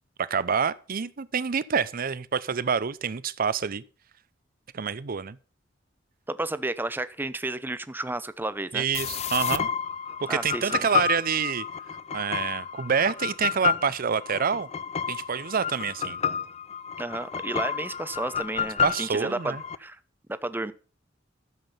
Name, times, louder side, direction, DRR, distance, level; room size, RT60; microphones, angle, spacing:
voice 1, 0.2-3.8 4.7-5.4 8.7-9.7 10.2-11.7 12.1-14.7 15.1-16.2 18.8-19.6, right 6 dB, 50° right, 0.6 m, -27 dB
voice 2, 6.3-8.9 10.3-10.9 17.0-20.0 20.3-20.7, right 2 dB, 10° right, 0.6 m, -32 dB
sound 1, 8.9-19.8, left 7 dB, 35° left, 0.5 m, -30 dB
12.5 x 7.3 x 5.7 m
head